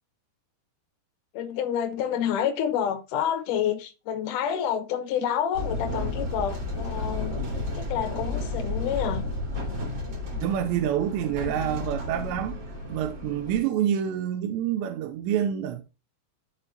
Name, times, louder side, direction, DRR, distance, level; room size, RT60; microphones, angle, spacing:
voice 1, 1.3-7.4 7.8-9.2, left 9 dB, 85° left, 1.8 m, -28 dB
sound 1, 5.5-13.6, left 2 dB, 30° right, 2.9 m, -32 dB
voice 2, 10.4-12.6 12.9-15.8, right 10 dB, 80° right, 2.9 m, -27 dB
13.0 x 5.0 x 2.8 m
omnidirectional pair, 5.4 m